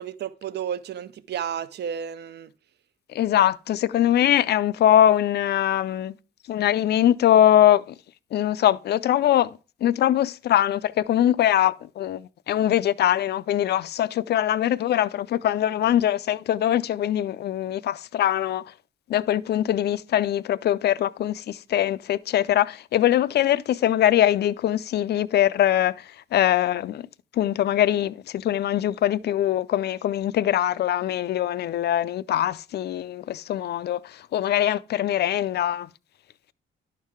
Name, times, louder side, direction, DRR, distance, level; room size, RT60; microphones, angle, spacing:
voice 1, 0.0-2.5, right 8 dB, 55° right, 0.6 m, -32 dB
voice 2, 3.1-6.2 6.5-7.8 8.3-18.6 19.1-27.1 27.3-35.9, left 11 dB, 55° left, 0.4 m, -22 dB
11.0 x 4.6 x 3.5 m
cardioid pair, 90°, 20 cm